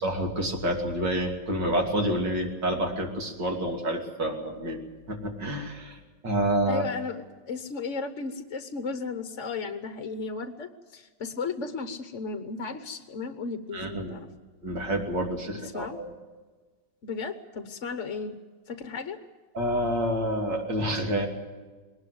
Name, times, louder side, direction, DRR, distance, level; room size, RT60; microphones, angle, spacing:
voice 1, 0.0-4.8 5.1-6.8 13.7-14.2 14.6-16.1 19.5-21.3, right 1 dB, 65° right, 2 dB, 3.4 m, -28 dB
voice 2, 6.7-14.3 15.5-16.0 17.0-18.4 18.7-19.2, left 4 dB, 45° left, 9 dB, 1.1 m, -35 dB
21.5 x 19.0 x 8.0 m, 1.3 s
omnidirectional pair, 2.1 m